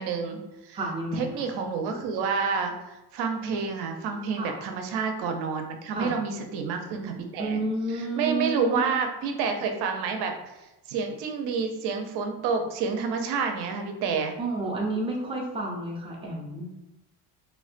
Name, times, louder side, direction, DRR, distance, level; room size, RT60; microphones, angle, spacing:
voice 1, 0.0-0.8 1.1-7.6 7.9-10.5 10.9-14.3, right 5 dB, 70° right, 4 dB, 0.6 m, -29 dB
voice 2, 0.7-1.5 4.4-4.6 5.9-6.2 7.4-8.9 14.4-16.8, right 2 dB, 15° right, -2 dB, 0.3 m, -30 dB
3.3 x 2.1 x 2.4 m, 0.97 s
cardioid pair, 165°, 41 cm